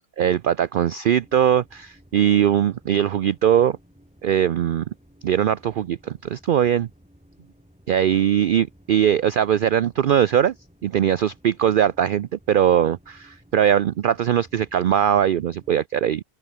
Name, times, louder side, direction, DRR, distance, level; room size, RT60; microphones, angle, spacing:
voice 1, 0.2-3.8 4.2-4.8 5.2-6.9 7.9-10.5 10.8-16.2, right 9 dB, 80° right, 0.4 m, -20 dB
sound 1, 1.2-15.7, equal, 5° right, 4.4 m, -55 dB
open air
omnidirectional pair, 1.4 m